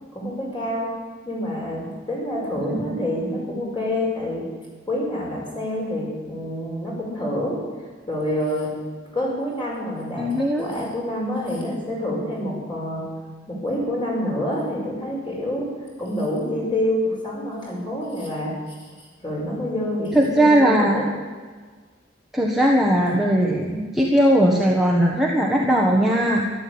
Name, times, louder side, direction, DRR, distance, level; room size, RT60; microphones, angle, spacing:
voice 1, 0.1-0.9 1.2-4.5 4.9-7.6 8.1-8.7 9.1-13.1 13.5-15.6 16.0-18.7 19.2-21.0, left 1 dB, 25° left, -3 dB, 5.4 m, -27 dB
voice 2, 2.6-3.0 10.2-10.7 20.1-21.1 22.3-26.5, right 1 dB, ahead, -3 dB, 1.4 m, -19 dB
13.5 x 11.5 x 8.7 m, 1.5 s
head